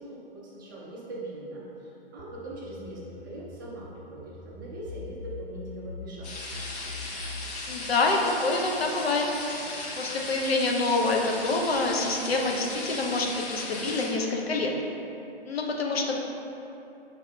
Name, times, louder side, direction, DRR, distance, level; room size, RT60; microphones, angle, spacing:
voice 1, 0.0-6.5, right 2 dB, 20° right, -6 dB, 0.5 m, -41 dB
sound 1, 2.2-7.5, left 4 dB, 80° right, 0.5 m, -43 dB
sound 2, 6.2-14.1, left 2 dB, 40° left, 0.9 m, -37 dB
voice 2, 7.7-9.3 10.0-14.7 15.5-16.2, left 3 dB, 70° left, 0 dB, 0.6 m, -26 dB
6.0 x 2.7 x 2.2 m, 2.9 s
figure-of-eight pair, 125°, 31 cm